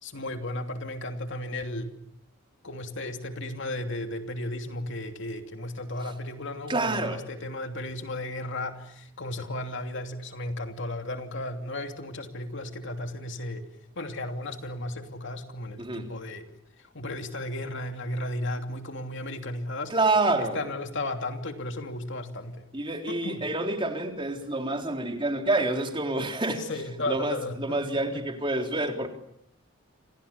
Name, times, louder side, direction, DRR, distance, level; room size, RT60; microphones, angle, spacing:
voice 1, 0.0-1.9 2.6-13.7 14.0-16.5 16.8-19.9 20.4-22.7 23.1-23.4 26.6-27.8 28.1-28.2, left 1 dB, 60° left, 6 dB, 3.0 m, -34 dB
voice 2, 6.7-7.2 15.8-16.0 19.9-20.6 22.7-26.6 27.1-29.1, right 2 dB, 25° right, 4 dB, 3.7 m, -27 dB
29.0 x 27.5 x 7.1 m, 0.70 s
head